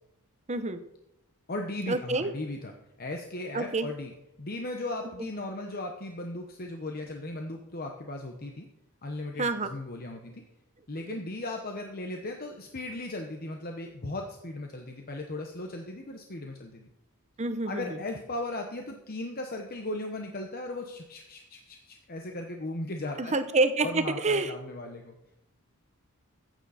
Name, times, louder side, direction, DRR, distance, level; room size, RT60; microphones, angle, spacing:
voice 1, 0.5-0.8 1.9-2.3 3.5-3.9 9.4-9.7 11.1-11.2 17.4-18.0 23.2-24.5, right 3 dB, 30° right, 9 dB, 0.8 m, -27 dB
voice 2, 1.5-2.7 3.0-8.7 9.0-10.4 10.9-16.9 17.7-23.4 23.8-25.2, left 2 dB, 40° left, 3 dB, 1.0 m, -37 dB
15.0 x 9.1 x 4.2 m, 0.87 s
head